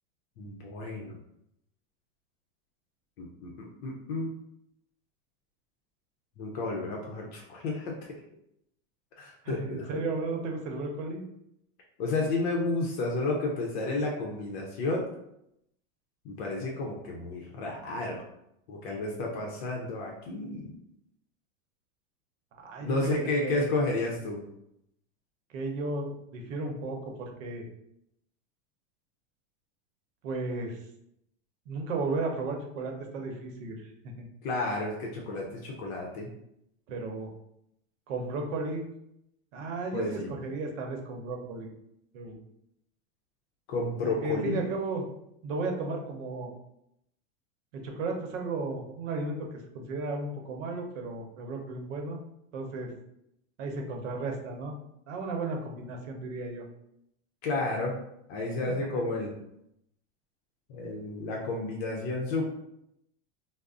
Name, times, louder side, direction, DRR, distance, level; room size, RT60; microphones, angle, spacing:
voice 1, 0.4-1.2 3.2-4.3 6.4-7.9 9.2-9.9 12.0-15.1 16.2-18.2 18.7-20.7 22.8-24.4 34.4-36.3 39.9-40.3 43.7-44.6 57.4-57.9 58.3-59.3 60.7-62.4, left 2 dB, 55° left, -1 dB, 0.6 m, -31 dB
voice 2, 9.4-11.2 22.6-23.7 25.5-27.7 30.2-30.8 31.7-34.3 36.9-37.3 38.1-38.8 39.5-41.7 42.1-42.4 44.0-45.1 45.4-46.5 47.7-52.2 52.5-52.9 53.6-54.7 55.1-56.6 58.7-59.0, right 3 dB, 80° right, 3 dB, 0.7 m, -34 dB
2.4 x 2.0 x 3.6 m, 0.79 s
supercardioid pair, 150°, 38 cm